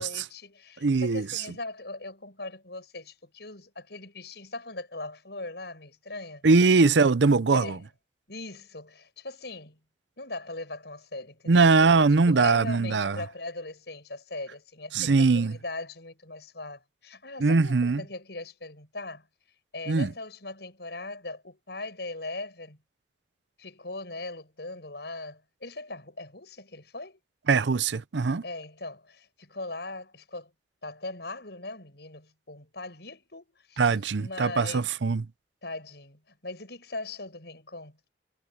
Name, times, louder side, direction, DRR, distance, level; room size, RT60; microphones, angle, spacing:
voice 1, 0.0-6.4 7.5-7.8 8.3-9.8 10.2-19.3 19.7-22.8 23.6-27.2 28.4-30.5 30.8-33.9 34.2-34.9 35.6-38.0, left 2 dB, 65° left, 6.1 m, -39 dB
voice 2, 0.8-1.4 6.4-7.8 11.5-13.2 14.9-15.6 17.4-18.0 19.9-20.1 27.5-28.4 33.8-35.2, right 4 dB, 75° right, 0.6 m, -22 dB
head